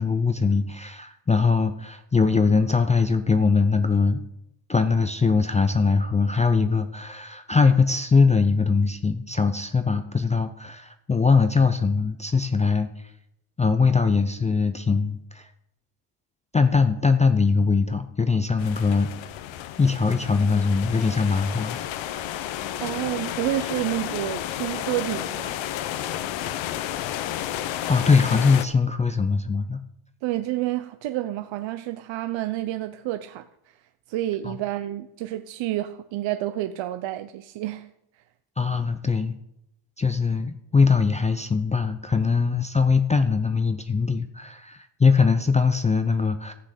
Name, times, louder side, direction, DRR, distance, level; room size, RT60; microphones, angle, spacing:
voice 1, 0.0-4.2 4.7-13.1 13.6-15.5 16.5-19.1 19.8-21.8 27.9-29.8 34.4-34.5 38.6-39.3 40.0-46.5, left 4 dB, 15° left, 0.4 m, -21 dB
sound 1, 18.6-28.6, left 11 dB, 65° left, 0.9 m, -32 dB
voice 2, 22.8-25.6 30.2-37.9 38.1-38.2, right 14 dB, 65° right, 0.7 m, -29 dB
14.0 x 7.7 x 6.5 m
cardioid pair, 145°, 49 cm